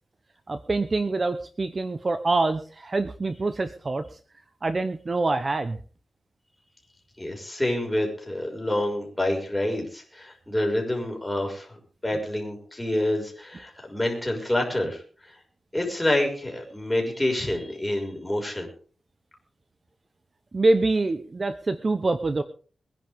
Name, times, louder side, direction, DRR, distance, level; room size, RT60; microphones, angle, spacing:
voice 1, 0.5-4.0 4.6-5.8 20.5-22.4, right 3 dB, 40° right, 10 dB, 1.0 m, -25 dB
voice 2, 7.2-15.0 15.3-15.4 15.7-18.7, left 1 dB, 10° left, 1 dB, 5.9 m, -27 dB
23.0 x 10.5 x 3.7 m, 0.41 s
wide cardioid pair, 95°, 0 cm